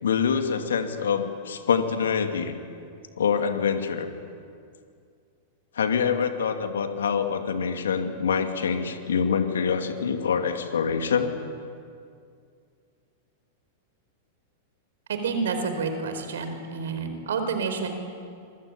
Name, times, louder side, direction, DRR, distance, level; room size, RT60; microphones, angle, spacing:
voice 1, 0.0-2.5 3.2-4.1 5.7-11.4, left 6 dB, 70° left, 6 dB, 2.5 m, -25 dB
voice 2, 15.1-18.0, right 5 dB, 65° right, 7 dB, 4.5 m, -29 dB
26.0 x 24.0 x 8.6 m, 2.3 s
figure-of-eight pair, 95°, 0 cm